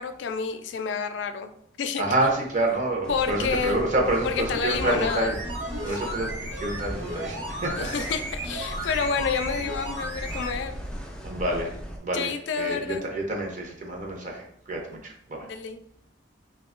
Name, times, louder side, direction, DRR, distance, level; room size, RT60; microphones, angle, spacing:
voice 1, 0.0-2.0 3.1-3.8 4.2-5.3 5.9-6.0 7.8-10.8 12.1-13.1 14.9-15.0 15.4-15.8, left 6 dB, 75° left, 9 dB, 0.3 m, -29 dB
voice 2, 2.0-5.4 5.8-7.9 11.2-11.8 12.0-12.3 12.6-15.5, right 1 dB, 45° right, 1 dB, 0.6 m, -28 dB
sound 1, 3.0-12.0, equal, 5° left, 0.4 m, -37 dB
sound 2, 4.5-10.6 10.8-10.9, right 1 dB, 80° right, 1.0 m, -35 dB
2.8 x 2.2 x 3.6 m, 0.68 s
head